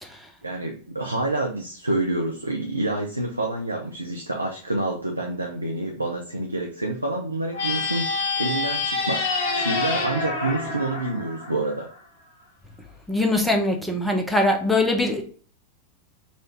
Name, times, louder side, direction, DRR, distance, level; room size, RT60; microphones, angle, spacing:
voice 1, 0.4-11.9, right 2 dB, 85° right, 1 dB, 0.6 m, -28 dB
sound 1, 7.5-12.0, left 3 dB, 55° left, 1.5 m, -27 dB
voice 2, 13.1-15.2, left 2 dB, 5° left, 2 dB, 0.9 m, -22 dB
4.2 x 2.5 x 4.4 m, 0.42 s
figure-of-eight pair, 90°, 0 cm